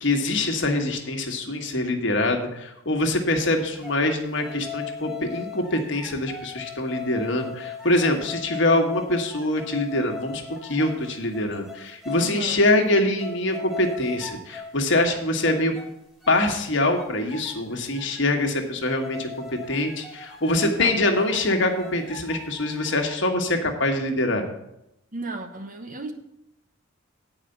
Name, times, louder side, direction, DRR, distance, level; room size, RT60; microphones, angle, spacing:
voice 1, 0.0-15.7 16.3-24.4, left 1 dB, 60° left, 3 dB, 1.4 m, -24 dB
sound 1, 3.6-4.0 4.3-12.4 12.8-12.9 13.2-14.8 15.1-15.9 16.2-16.7 17.0-18.3 18.9-23.2, left 6 dB, 5° right, 1.5 m, -39 dB
voice 2, 12.2-12.6 20.6-21.0 25.1-26.1, right 3 dB, 40° right, 5 dB, 1.0 m, -34 dB
9.3 x 4.9 x 7.8 m, 0.83 s
head